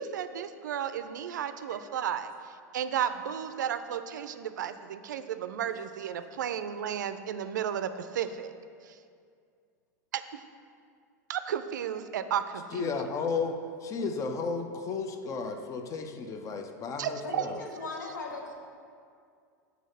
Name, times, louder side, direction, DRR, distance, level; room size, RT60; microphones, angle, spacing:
voice 1, 0.0-8.5 8.8-9.0 10.1-10.4 11.3-12.9 17.0-17.5, right 9 dB, 80° right, 11 dB, 0.4 m, -33 dB
voice 2, 12.7-13.6 13.8-17.6, left 4 dB, 35° left, 6 dB, 0.6 m, -33 dB
voice 3, 17.2-18.5, left 3 dB, 85° left, 0 dB, 1.1 m, -39 dB
6.3 x 4.0 x 5.5 m, 2.3 s
hypercardioid pair, 95°, 10 cm